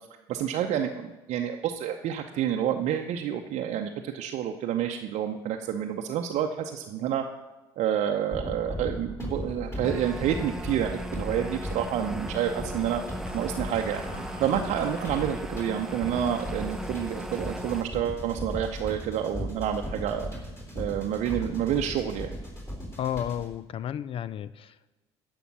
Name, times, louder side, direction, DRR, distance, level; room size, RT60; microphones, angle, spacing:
voice 1, 0.3-7.2 7.8-14.0 14.4-20.3 20.7-22.3, right 9 dB, 55° right, 3 dB, 0.7 m, -29 dB
sound 1, 8.3-23.6, equal, 20° left, 3.6 m, -37 dB
sound 2, 9.3-16.8, left 1 dB, 70° left, 3.6 m, -51 dB
sound 3, 9.8-17.8, equal, 5° right, 0.8 m, -38 dB
voice 2, 23.0-25.0, left 10 dB, 40° left, 17 dB, 0.4 m, -33 dB
12.0 x 5.3 x 7.4 m, 1.1 s
hypercardioid pair, 60°, 14 cm